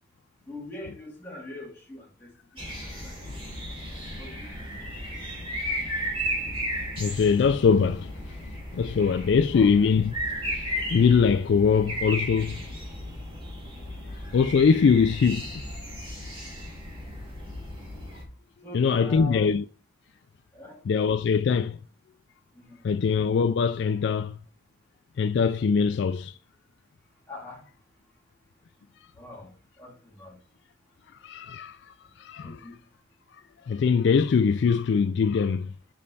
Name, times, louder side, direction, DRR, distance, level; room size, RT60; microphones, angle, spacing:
voice 1, 0.5-2.3 2.8-3.2 4.2-4.8 9.5-9.7 18.6-19.5 20.5-20.8 22.5-22.8 27.3-27.6 29.2-29.5 29.8-30.4 32.4-32.8, left 2 dB, 10° left, 2.3 m, -42 dB
sound 1, 2.6-18.2, equal, 25° right, 2.3 m, -35 dB
voice 2, 7.0-8.1 8.7-10.1 10.5-12.6 14.3-15.6 18.7-19.6 20.9-21.8 22.8-24.4 25.2-26.3 31.2-31.8 32.2-32.6 33.7-35.7, left 5 dB, 60° left, 0.3 m, -22 dB
5.6 x 5.2 x 4.1 m
head